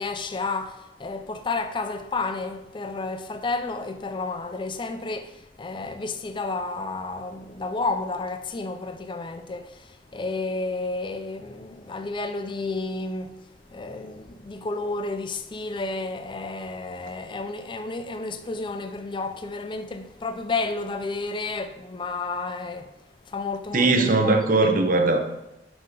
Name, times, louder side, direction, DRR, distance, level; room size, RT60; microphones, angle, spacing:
voice 1, 0.0-13.3 13.7-22.9 23.3-24.7, left 3 dB, 30° left, 0.5 m, -31 dB
voice 2, 23.7-25.2, right 3 dB, 50° right, 0.8 m, -19 dB
6.0 x 5.6 x 5.1 m
head